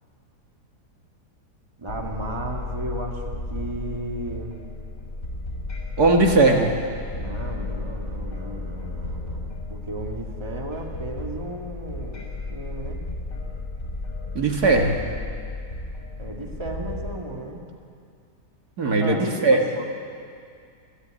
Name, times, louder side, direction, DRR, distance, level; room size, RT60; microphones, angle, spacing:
voice 1, 1.8-4.6 7.1-13.0 16.2-17.6 19.0-19.8, right 1 dB, 15° right, 0 dB, 2.3 m, -34 dB
sound 1, 1.9-17.1, left 2 dB, 40° left, 6.1 m, -34 dB
voice 2, 6.0-6.7 14.3-15.0 18.8-19.8, right 2 dB, 70° right, 2 dB, 2.2 m, -19 dB
29.0 x 13.0 x 9.2 m, 2.3 s
omnidirectional pair, 1.7 m